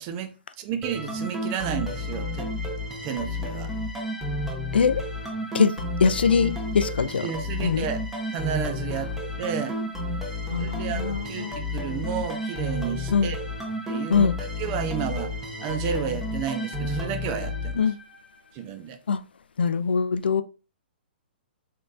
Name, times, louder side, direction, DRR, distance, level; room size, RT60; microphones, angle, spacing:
voice 1, 0.0-2.5 3.0-3.7 7.2-8.0 8.3-9.8 10.6-13.4 13.9-15.3 15.6-17.8 18.5-19.0, right 8 dB, 35° right, 0.6 m, -32 dB
sound 1, 0.8-18.4, left 1 dB, 5° right, 1.1 m, -31 dB
voice 2, 4.7-5.0 5.5-5.7 6.0-7.3 7.6-7.9 10.5-11.6 13.1-13.3 14.1-14.4 17.8-17.9 19.1-19.2 19.6-20.4, left 6 dB, 70° left, 0.3 m, -22 dB
3.8 x 3.7 x 2.5 m
figure-of-eight pair, 120°, 6 cm